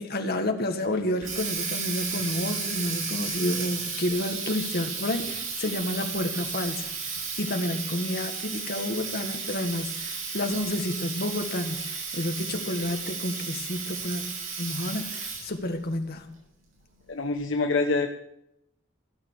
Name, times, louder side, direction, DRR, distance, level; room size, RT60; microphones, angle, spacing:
voice 1, 0.0-14.2 14.6-16.3, left 1 dB, 50° left, 5 dB, 1.6 m, -30 dB
Water tap faucet, 0.9-15.6, right 5 dB, 90° right, 6.5 m, -34 dB
voice 2, 17.1-18.1, left 3 dB, 65° left, 4 dB, 1.0 m, -25 dB
15.5 x 6.9 x 8.7 m, 0.79 s
head